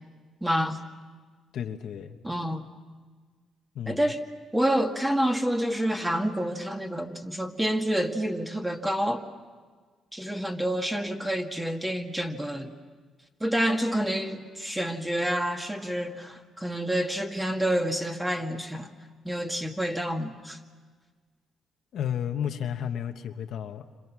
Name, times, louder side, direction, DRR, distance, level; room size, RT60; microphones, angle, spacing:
voice 1, 0.4-0.8 2.2-2.7 3.9-4.2 4.5-9.2 10.1-12.7 13.4-18.9 19.2-20.6, equal, 5° right, 3 dB, 2.1 m, -28 dB
voice 2, 1.5-2.2 3.7-4.1 21.9-23.9, left 9 dB, 70° left, 5 dB, 1.3 m, -32 dB
29.5 x 26.5 x 6.2 m, 1.5 s
cardioid pair, 90°, 0 cm